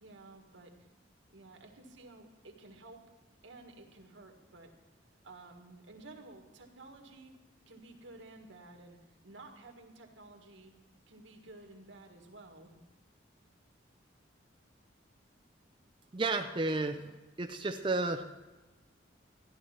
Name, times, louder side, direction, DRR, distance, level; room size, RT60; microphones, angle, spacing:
voice 1, 0.0-0.9 1.3-3.1 3.4-4.7 5.2-7.3 7.7-10.7 11.1-12.8, right 2 dB, 85° right, 3 dB, 1.8 m, -53 dB
voice 2, 16.1-17.1 17.4-18.2, right 2 dB, 25° right, 5 dB, 0.5 m, -32 dB
14.0 x 11.5 x 4.4 m, 1.2 s
head